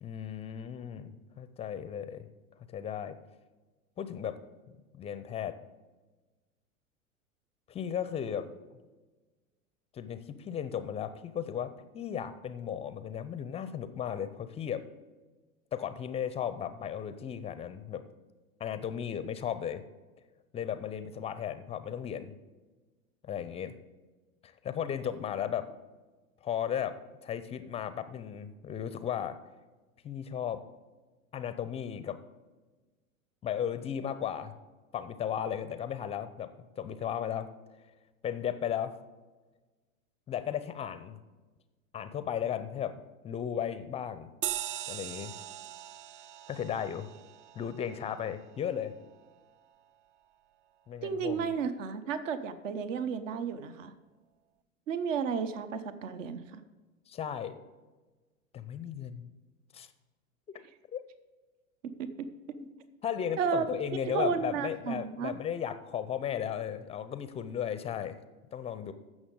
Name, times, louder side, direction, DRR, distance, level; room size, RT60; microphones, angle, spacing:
voice 1, 0.0-2.3 2.7-3.2 4.0-4.4 4.9-5.6 7.7-8.6 9.9-14.8 15.7-18.0 18.6-19.8 20.5-22.3 23.2-23.7 24.4-25.7 26.4-29.4 30.0-30.6 31.3-32.2 33.4-34.5 34.9-37.5 38.2-39.0 40.3-41.2 41.9-42.9 43.2-44.3 44.9-45.3 46.5-47.1 47.6-48.9 50.9-51.5 57.1-57.5 58.5-59.3 59.7-59.9 60.5-60.6 60.9-61.0 62.6-62.7 63.0-68.2 68.5-68.9, left 9 dB, 15° left, 12 dB, 0.5 m, -35 dB
sound 1, 44.4-49.3, right 12 dB, 40° right, 0.4 m, -41 dB
voice 2, 51.0-53.9 54.9-56.6 62.0-62.1 63.4-63.7 64.0-65.4, right 6 dB, 65° right, 12 dB, 0.9 m, -32 dB
15.0 x 6.3 x 3.8 m, 1.3 s
figure-of-eight pair, 90°, 42 cm